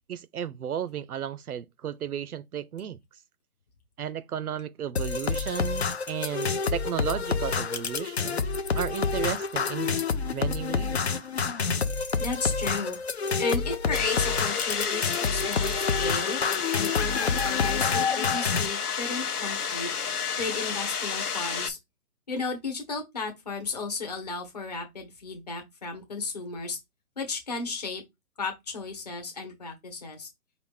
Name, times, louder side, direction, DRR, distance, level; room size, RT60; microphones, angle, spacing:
voice 1, 0.1-3.0 4.0-8.4 8.7-10.0 10.3-11.0, right 9 dB, 75° right, 0.6 m, -34 dB
sound 1, 5.0-18.7, left 5 dB, 45° left, 0.5 m, -28 dB
voice 2, 12.2-13.0 13.4-16.4 16.7-19.9 20.4-21.8 22.3-26.8 27.2-28.0 28.4-30.3, left 4 dB, 25° left, 1.1 m, -34 dB
sound 2, 13.9-21.7, left 6 dB, 80° left, 0.9 m, -30 dB
4.8 x 2.4 x 3.6 m
hypercardioid pair, 160°, 45 cm